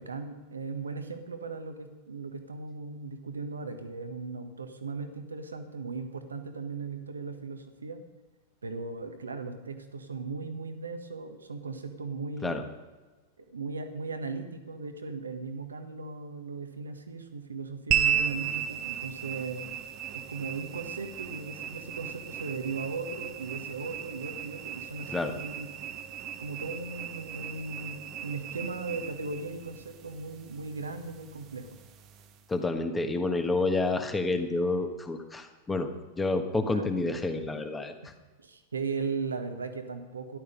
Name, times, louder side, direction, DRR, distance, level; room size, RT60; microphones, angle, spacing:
voice 1, 0.0-8.0 8.6-12.6 13.4-19.6 20.1-25.7 26.4-31.7 36.7-36.9 38.0-38.1 38.4-40.4, right 4 dB, 75° right, 7 dB, 1.5 m, -37 dB
sound 1, 17.9-32.5, right 9 dB, 35° right, 1.2 m, -36 dB
voice 2, 32.5-35.9 36.1-37.9, left 2 dB, 10° left, 6 dB, 1.5 m, -29 dB
14.0 x 11.5 x 5.3 m, 1.2 s
figure-of-eight pair, 90°, 0 cm